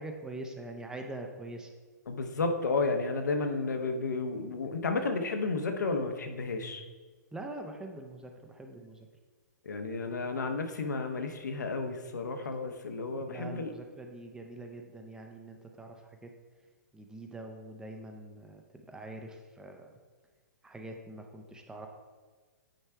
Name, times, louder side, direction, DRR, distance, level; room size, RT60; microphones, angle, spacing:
voice 1, 0.0-1.7 7.3-9.1 13.2-16.3 16.9-19.9 20.6-21.9, right 2 dB, 5° right, 3 dB, 0.6 m, -44 dB
voice 2, 2.1-6.8 9.6-13.7, left 3 dB, 75° left, 5 dB, 0.9 m, -32 dB
9.0 x 3.2 x 4.6 m, 1.4 s
figure-of-eight pair, 120°, 10 cm